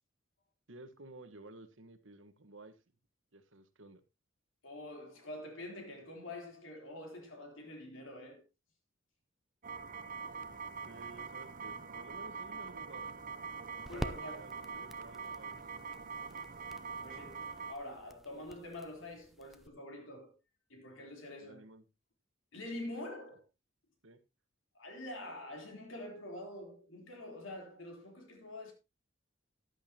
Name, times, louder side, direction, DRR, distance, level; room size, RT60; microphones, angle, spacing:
voice 1, 0.7-2.8 3.3-4.0 10.8-13.1 13.7-15.6 21.4-21.8 24.0-24.2, right 2 dB, 75° right, 1.4 m, -54 dB
voice 2, 4.6-8.4 13.9-14.4 17.0-20.4 20.7-21.6 22.5-23.4 24.8-28.7, left 1 dB, 80° left, 3.6 m, -46 dB
sound 1, 9.6-17.7, right 5 dB, 45° right, 0.9 m, -44 dB
sound 2, 11.9-19.7, equal, ahead, 0.6 m, -49 dB
14.5 x 10.5 x 2.9 m
head